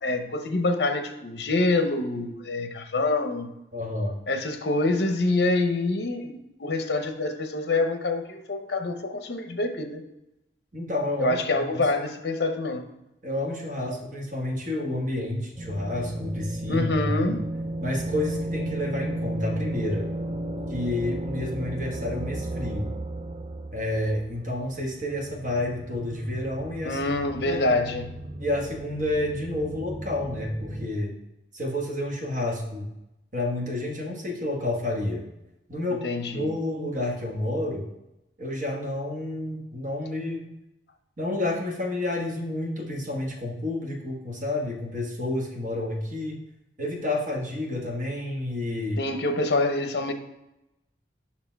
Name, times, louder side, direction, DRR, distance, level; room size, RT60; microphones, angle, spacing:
voice 1, 0.0-3.5 4.3-10.0 11.2-12.9 16.7-17.4 26.8-28.1 35.9-36.5 49.0-50.1, left 2 dB, 65° left, 0.7 m, -26 dB
voice 2, 3.7-4.2 10.7-11.4 11.7-11.8 13.2-17.3 17.8-20.1 20.7-22.9 23.7-27.0 27.4-27.6 28.4-31.1 31.5-32.9 33.3-35.2 35.7-36.0 36.3-37.9 38.4-40.4 41.2-46.4 46.8-49.0, left 1 dB, 45° right, 1.4 m, -30 dB
sound 1, 15.6-30.9, right 1 dB, 30° right, 0.4 m, -34 dB
5.9 x 4.3 x 4.5 m
head